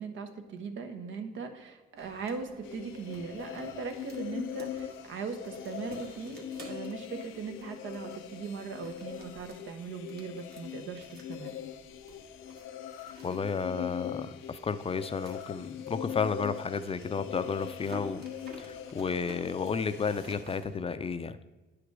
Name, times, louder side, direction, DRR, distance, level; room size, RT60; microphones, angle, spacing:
voice 1, 0.0-11.6, right 5 dB, 75° right, 6 dB, 1.0 m, -39 dB
sound 1, 2.0-20.8, right 2 dB, 55° right, 1.7 m, -53 dB
sound 2, 2.6-20.4, left 9 dB, 85° left, 0.5 m, -42 dB
voice 2, 13.2-18.2 18.6-21.4, left 5 dB, 30° left, 12 dB, 0.4 m, -32 dB
9.6 x 5.0 x 4.6 m, 1.2 s
cardioid pair, 90°, 20 cm